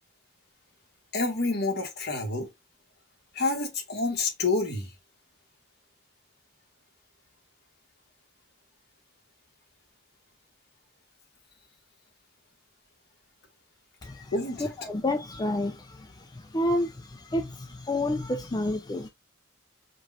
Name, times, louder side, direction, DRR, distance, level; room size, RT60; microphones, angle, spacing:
voice 1, 1.1-2.5 3.3-4.9 14.3-14.7, left 3 dB, 55° left, 1.8 m, -28 dB
voice 2, 14.0-14.3 14.6-19.1, left 1 dB, 20° left, 0.4 m, -30 dB
5.1 x 2.5 x 4.1 m
head